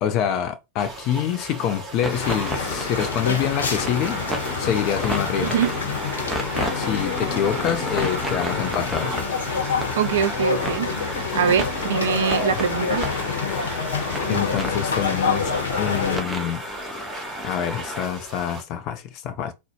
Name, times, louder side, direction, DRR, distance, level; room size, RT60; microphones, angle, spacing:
voice 1, 0.0-4.2 4.6-5.5 6.7-9.2 12.5-12.6 14.3-16.6 17.4-19.5, left 9 dB, 40° left, 0.5 m, -26 dB
sound 1, 0.8-18.6, right 2 dB, 20° right, 1.9 m, -39 dB
sound 2, 2.0-18.1, equal, 5° right, 0.7 m, -32 dB
sound 3, 2.1-16.2, left 5 dB, 65° left, 0.8 m, -27 dB
voice 2, 10.0-10.9 11.3-13.1, right 8 dB, 60° right, 0.4 m, -23 dB
3.9 x 2.0 x 2.8 m
figure-of-eight pair, 90°, 0 cm